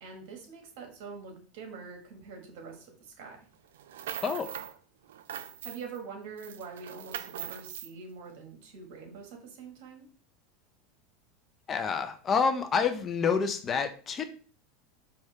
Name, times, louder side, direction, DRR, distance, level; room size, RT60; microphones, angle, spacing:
voice 1, 0.0-3.4 5.6-10.1, right 5 dB, 70° right, 3 dB, 1.5 m, -45 dB
sound 1, 3.7-4.8 5.1-6.0 6.4-7.9, right 10 dB, 90° right, 0.3 m, -40 dB
voice 2, 4.2-4.5 11.7-14.2, left 5 dB, 30° left, 8 dB, 0.5 m, -28 dB
4.8 x 2.8 x 3.2 m, 0.41 s
supercardioid pair, 115°, 0 cm